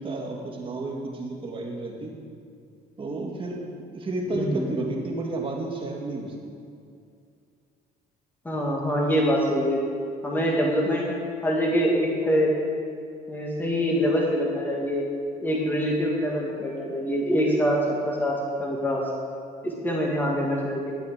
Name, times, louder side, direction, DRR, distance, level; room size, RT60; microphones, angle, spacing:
voice 1, 0.0-2.1 3.0-6.5, right 2 dB, 30° right, 0 dB, 2.0 m, -32 dB
voice 2, 4.4-4.7 8.5-9.8 10.2-12.5 13.3-15.1 15.4-17.8 18.1-19.0 19.6-20.9, equal, 10° left, -2 dB, 1.6 m, -24 dB
12.0 x 8.4 x 4.9 m, 2.4 s
cardioid pair, 110°, 17 cm